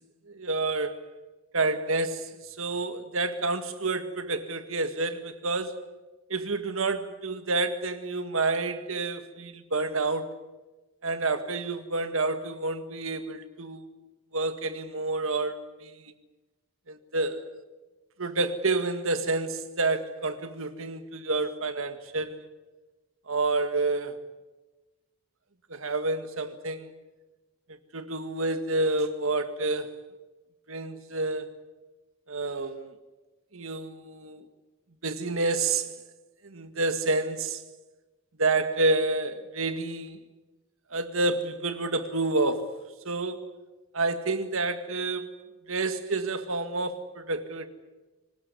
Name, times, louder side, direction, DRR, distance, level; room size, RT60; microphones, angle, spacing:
voice 1, 0.3-1.0 1.5-5.8 6.3-10.3 11.0-13.8 14.3-15.9 16.9-17.5 18.2-22.5 23.3-24.2 25.7-26.9 27.9-29.9 30.7-31.6 32.3-33.0 33.5-34.5 35.0-35.9 36.4-37.6 38.4-40.2 40.9-42.8 43.1-43.5 43.9-45.3 45.7-47.7, right 3 dB, 75° right, 1.9 m, -29 dB
25.0 x 19.5 x 9.6 m
head